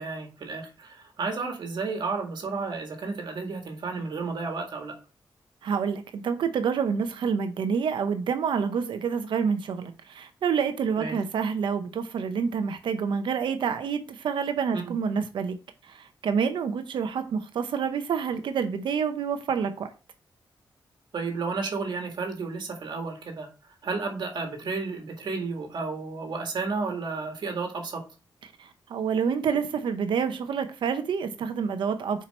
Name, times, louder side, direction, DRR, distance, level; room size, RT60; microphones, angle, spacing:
voice 1, 0.0-5.0 11.0-11.2 14.7-14.9 21.1-23.5 23.8-28.1, right 4 dB, 65° right, 1.9 m, -32 dB
voice 2, 5.6-15.6 15.9-19.9 28.6-32.2, right 6 dB, 85° right, 0.7 m, -28 dB
6.0 x 4.7 x 4.2 m
cardioid pair, 100°, 8 cm